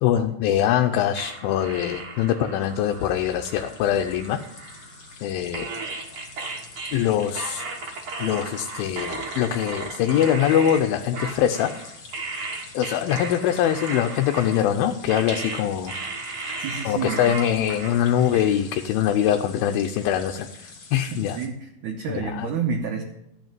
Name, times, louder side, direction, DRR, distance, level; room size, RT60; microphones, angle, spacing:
voice 1, 0.0-4.4 5.2-5.7 6.9-7.6 8.2-11.7 12.7-15.9 16.8-21.4 22.1-22.5, left 10 dB, 80° left, 5 dB, 2.3 m, -23 dB
sound 1, 1.1-5.2 5.5-18.8, right 3 dB, 45° right, 2.0 m, -35 dB
sound 2, 2.6-21.5, left 4 dB, 40° left, 2.1 m, -45 dB
voice 2, 16.6-17.6 21.1-23.0, right 6 dB, 70° right, 3 dB, 1.9 m, -30 dB
13.5 x 5.8 x 9.0 m, 0.85 s
omnidirectional pair, 4.5 m